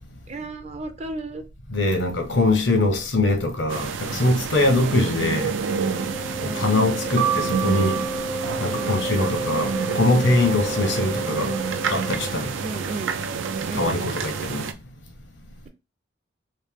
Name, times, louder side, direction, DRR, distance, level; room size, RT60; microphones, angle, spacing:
voice 1, 0.3-1.4 4.8-5.3 6.4-6.8 8.7-9.1 12.6-13.1 13.6-14.2, right 3 dB, 35° right, 0.5 m, -35 dB
voice 2, 1.7-5.5 6.4-8.0 8.6-11.5 11.9-12.5 13.7-14.7, left 2 dB, 70° left, 0.9 m, -22 dB
sound 1, 3.7-14.7, right 5 dB, 85° right, 0.4 m, -29 dB
Wind instrument woodwind instrument, 5.5-12.5, right 1 dB, 15° left, 0.3 m, -32 dB
sound 2, 7.1-11.0 11.8-12.5, right 10 dB, 55° right, 0.9 m, -32 dB
3.1 x 2.6 x 3.6 m
head